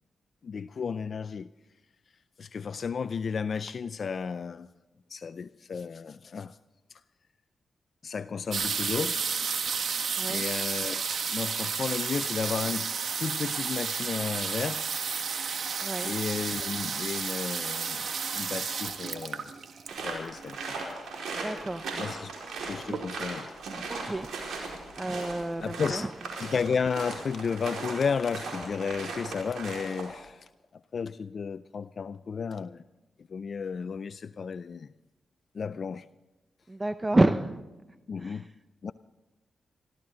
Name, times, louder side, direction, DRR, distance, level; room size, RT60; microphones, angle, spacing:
voice 1, 0.4-1.5 2.4-4.7 5.1-6.6 6.9-7.0 8.0-9.2 10.3-12.9 13.2-14.9 16.0-19.5 20.0-20.8 22.0-22.3 22.7-23.9 25.0-25.3 25.6-26.1 26.4-30.5 30.9-32.8 33.3-34.9 35.5-36.1 38.1-38.5 38.8-38.9, left 6 dB, 60° left, 0.4 m, -33 dB
sound 1, 8.5-21.0 21.9-22.0 22.2-22.6 22.9-23.4 24.0-24.1 24.3-24.4, right 6 dB, 70° right, 1.6 m, -32 dB
voice 2, 15.8-16.1 21.3-21.9 23.9-24.3 25.0-26.1 36.7-37.6 38.2-38.4, right 2 dB, 25° right, 0.7 m, -28 dB
sound 2, 19.9-30.2, right 3 dB, 85° right, 4.6 m, -38 dB
22.0 x 14.0 x 3.9 m
cardioid pair, 65°, 0 cm